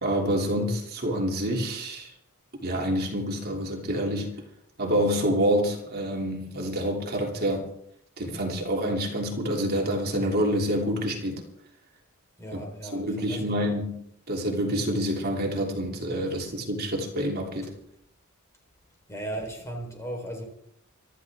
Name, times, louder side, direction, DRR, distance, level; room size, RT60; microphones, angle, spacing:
voice 1, 0.0-2.1 2.6-4.4 4.8-7.7 8.2-11.4 12.9-14.0 14.3-17.7, equal, 45° right, 3.2 m, -27 dB
voice 2, 12.4-13.6 19.1-20.4, right 1 dB, 15° left, 4.3 m, -36 dB
25.5 x 13.0 x 3.7 m
head